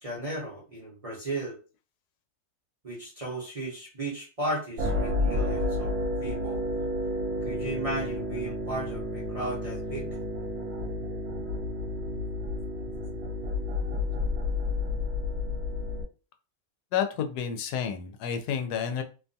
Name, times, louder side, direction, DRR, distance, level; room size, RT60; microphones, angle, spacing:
voice 1, 0.0-1.6 2.8-5.9 6.2-6.6 7.4-10.1, right 1 dB, 30° right, -6 dB, 0.7 m, -35 dB
sound 1, 4.8-16.0, left 2 dB, 75° right, 1.1 m, -31 dB
voice 2, 16.9-19.0, left 8 dB, 85° left, 6 dB, 1.1 m, -30 dB
2.7 x 2.3 x 2.6 m, 0.34 s
omnidirectional pair, 1.6 m